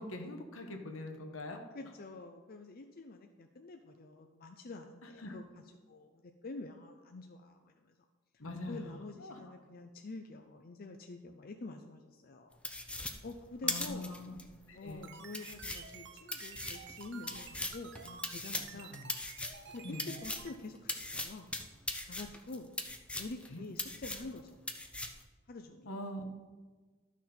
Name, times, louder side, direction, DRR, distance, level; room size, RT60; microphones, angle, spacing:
voice 1, 0.0-1.6 5.2-5.3 8.4-9.4 13.6-14.4 14.7-15.1 18.7-19.1 19.8-20.1 23.5-23.6 25.8-26.2, left 1 dB, 80° left, 4 dB, 1.3 m, -43 dB
voice 2, 1.7-5.4 5.9-6.1 6.4-7.9 8.7-12.6 13.2-14.2 14.7-18.9 19.7-21.5 22.1-22.7 23.2-24.6 25.5-25.9, left 3 dB, 45° left, 5 dB, 0.6 m, -47 dB
sound 1, 12.6-14.4 14.9-15.0 15.3-20.5 20.9-23.5 23.8-24.4 24.7-25.2, left 2 dB, 5° left, 0.6 m, -39 dB
sound 2, 14.8-20.5, right 6 dB, 60° right, 0.8 m, -51 dB
12.5 x 6.1 x 4.3 m, 1.4 s
head